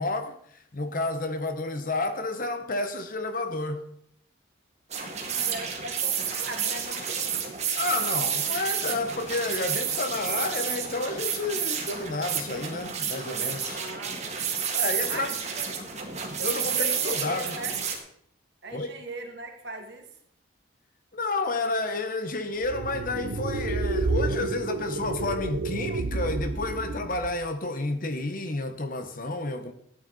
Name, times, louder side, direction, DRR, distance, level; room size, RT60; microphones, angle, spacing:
voice 1, 0.0-3.8 7.8-13.8 14.7-15.3 16.4-17.6 18.7-18.9 21.1-29.7, left 2 dB, 45° left, 1.0 m, -30 dB
sound 1, 4.9-18.0, right 7 dB, 35° right, 2.0 m, -30 dB
voice 2, 5.0-7.6 13.7-14.2 15.1-15.7 16.3-17.8 18.6-20.1, right 2 dB, 55° right, 2.1 m, -40 dB
sound 2, 22.6-27.5, right 3 dB, 85° right, 0.8 m, -30 dB
13.5 x 9.4 x 4.1 m
head